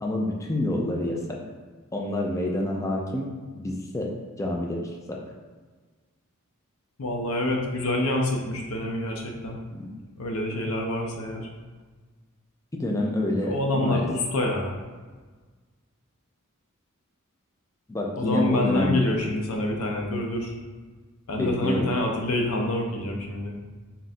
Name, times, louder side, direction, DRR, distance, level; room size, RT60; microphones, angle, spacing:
voice 1, 0.0-1.4 1.9-3.3 3.6-4.1 4.4-5.2 9.7-9.9 12.8-14.1 17.9-19.3 21.4-21.9, left 1 dB, 15° left, -1 dB, 0.4 m, -28 dB
voice 2, 7.0-9.6 10.2-11.5 13.4-14.8 18.1-20.5 21.3-23.5, left 1 dB, 85° left, 1 dB, 0.7 m, -27 dB
3.8 x 2.4 x 4.2 m, 1.4 s
head